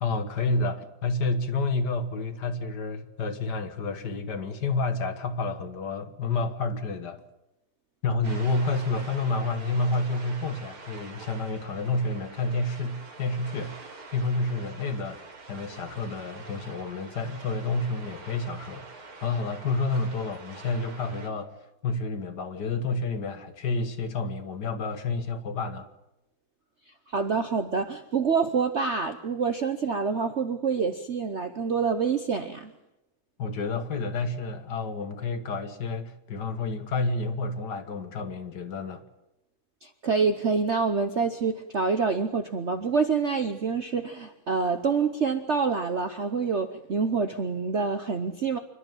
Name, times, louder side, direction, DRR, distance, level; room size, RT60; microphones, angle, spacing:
voice 1, 0.0-7.2 8.0-13.8 14.1-15.2 15.5-21.5 21.8-25.9 33.4-39.0, left 3 dB, 55° left, 1.8 m, -29 dB
sound 1, 8.2-21.3, right 3 dB, 85° right, 3.5 m, -45 dB
voice 2, 27.1-32.7 39.8-48.6, right 5 dB, 50° right, 0.9 m, -27 dB
27.5 x 11.5 x 9.1 m
omnidirectional pair, 2.2 m